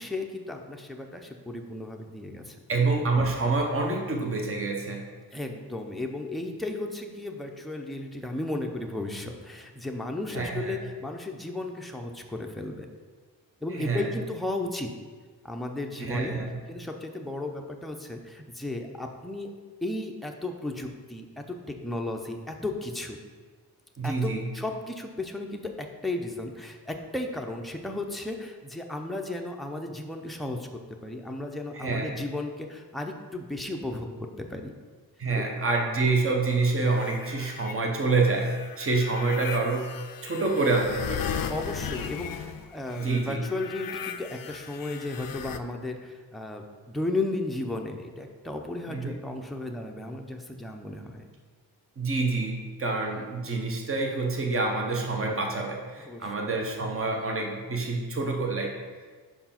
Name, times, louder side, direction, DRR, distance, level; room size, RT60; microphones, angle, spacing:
voice 1, 0.0-2.6 5.3-12.9 13.6-14.9 15.4-16.4 16.7-19.5 19.8-23.2 24.0-34.1 34.4-34.7 35.3-35.4 41.5-51.3 56.0-56.3, left 2 dB, ahead, 2 dB, 0.6 m, -34 dB
voice 2, 2.7-5.0 10.3-10.8 13.8-14.1 16.0-16.6 24.0-24.5 31.7-32.1 35.2-39.9 40.2-41.4 43.0-43.4 48.9-49.1 52.0-58.7, right 3 dB, 35° right, 1 dB, 0.9 m, -27 dB
sound 1, 36.5-37.7 38.2-45.6, left 7 dB, 65° left, 0.5 m, -37 dB
5.6 x 4.7 x 5.7 m, 1.5 s
wide cardioid pair, 125°, 38 cm